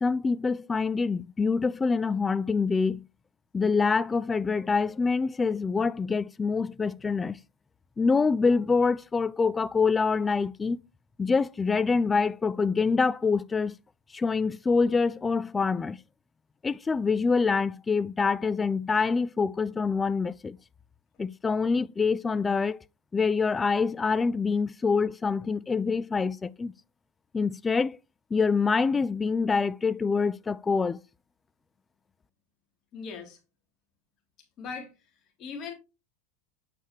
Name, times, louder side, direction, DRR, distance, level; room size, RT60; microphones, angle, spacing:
voice 1, 0.0-3.0 3.5-7.4 8.0-10.8 11.2-13.8 14.1-16.0 16.6-20.6 21.2-22.8 23.1-26.7 27.3-28.0 28.3-31.0, left 4 dB, 20° left, 0.4 m, -25 dB
voice 2, 32.9-33.4 34.6-34.9 35.4-35.7, left 5 dB, 40° left, 3.0 m, -38 dB
7.9 x 6.3 x 3.0 m
hypercardioid pair, 90°, 0 cm